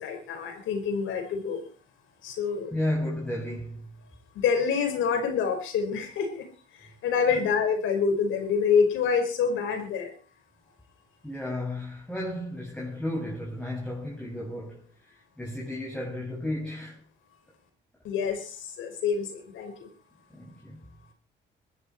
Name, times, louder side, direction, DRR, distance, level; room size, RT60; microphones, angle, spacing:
voice 1, 0.0-1.6 2.2-2.7 4.3-6.5 6.8-10.1 18.0-19.9, left 6 dB, 85° left, 5.3 m, -27 dB
voice 2, 2.7-3.9 7.3-7.4 11.2-17.0 20.3-20.8, left 1 dB, 5° left, 7.3 m, -33 dB
21.0 x 14.5 x 4.6 m
cardioid pair, 90°, 20 cm